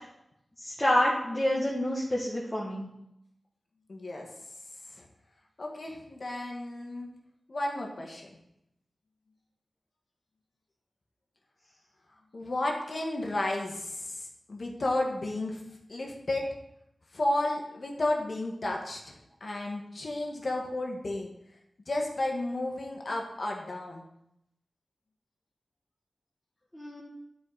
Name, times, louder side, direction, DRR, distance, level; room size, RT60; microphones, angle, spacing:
voice 1, 0.6-2.9 26.7-27.0, left 1 dB, 15° left, -6 dB, 1.7 m, -28 dB
voice 2, 3.9-4.3 4.9-5.0 5.6-7.1 7.5-8.3 12.3-15.6 15.9-16.5 17.1-21.3 21.9-24.1, left 1 dB, 50° left, 0 dB, 1.4 m, -32 dB
10.5 x 4.8 x 3.9 m, 0.82 s
wide cardioid pair, 80°, 0 cm